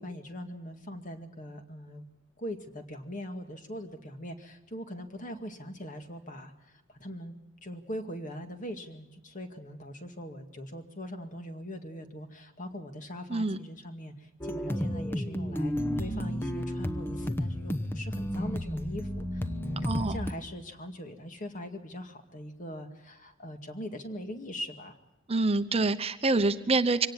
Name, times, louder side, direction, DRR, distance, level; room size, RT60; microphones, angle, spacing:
voice 1, 0.0-2.1 2.4-7.3 7.6-25.0, equal, 40° left, 6 dB, 2.2 m, -41 dB
sound 1, 14.4-20.3, equal, 10° left, 1.0 m, -32 dB
voice 2, 19.8-20.2 25.3-27.1, right 3 dB, 30° right, 10 dB, 0.8 m, -26 dB
24.5 x 18.0 x 7.4 m, 0.94 s
head